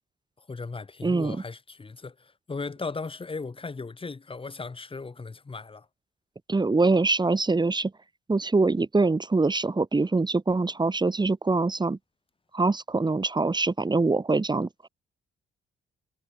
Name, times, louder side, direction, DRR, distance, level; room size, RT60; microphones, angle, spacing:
voice 1, 0.4-5.9, left 4 dB, 25° left, 5.9 m, -37 dB
voice 2, 1.0-1.4 6.5-7.9 8.3-12.0 12.5-14.7, right 3 dB, 20° right, 3.8 m, -24 dB
cardioid pair, 90°, 20 cm